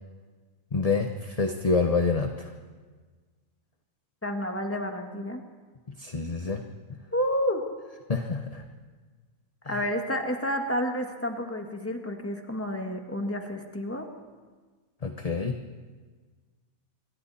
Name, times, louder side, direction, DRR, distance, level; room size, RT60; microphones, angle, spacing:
voice 1, 0.7-2.5 6.0-6.6 8.1-8.6 9.6-9.8 15.0-15.5, left 4 dB, 30° left, 5 dB, 1.0 m, -27 dB
voice 2, 4.2-5.4 7.1-7.6 9.6-14.1, equal, 10° left, 3 dB, 1.7 m, -30 dB
26.5 x 24.0 x 4.3 m, 1.5 s
omnidirectional pair, 1.5 m